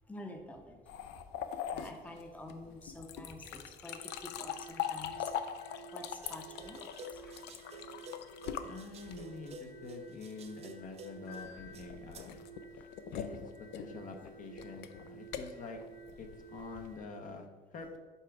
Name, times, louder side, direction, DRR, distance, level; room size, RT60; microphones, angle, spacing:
voice 1, 0.1-0.8 1.7-5.3 5.9-7.4, left 1 dB, 10° left, 3 dB, 0.7 m, -48 dB
sound 1, 0.9-9.5 11.3-17.0, left 9 dB, 80° left, 0.5 m, -42 dB
sound 2, 3.9-17.1, right 5 dB, 25° left, 1.1 m, -53 dB
sound 3, 6.2-12.3, equal, 40° right, 0.6 m, -51 dB
voice 2, 8.6-12.4 13.1-13.4 13.7-15.8 16.2-18.0, left 4 dB, 50° left, 4 dB, 0.8 m, -46 dB
5.5 x 3.8 x 4.7 m, 1.5 s
cardioid pair, 110°, 17 cm